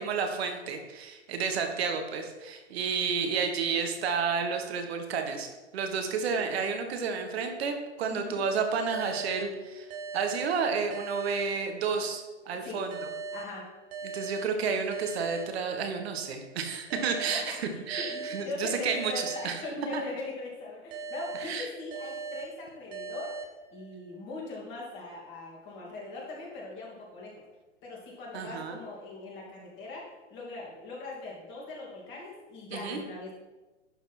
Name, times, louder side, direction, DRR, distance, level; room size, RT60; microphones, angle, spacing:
voice 1, 0.0-9.9 10.1-13.1 14.0-19.6 19.9-20.0 21.3-21.7 28.3-28.8 32.7-33.0, right 5 dB, 55° right, 5 dB, 1.4 m, -31 dB
voice 2, 8.1-8.4 12.6-12.9 13.3-13.7 16.9-17.0 17.3-23.3 23.7-27.3 27.8-33.3, left 3 dB, 30° left, -3 dB, 2.8 m, -40 dB
sound 1, 8.9-12.2 12.9-16.2 16.9-20.2 20.9-24.2, right 4 dB, 30° right, 0.8 m, -41 dB
11.5 x 4.2 x 4.3 m, 1.2 s
hypercardioid pair, 120°, 36 cm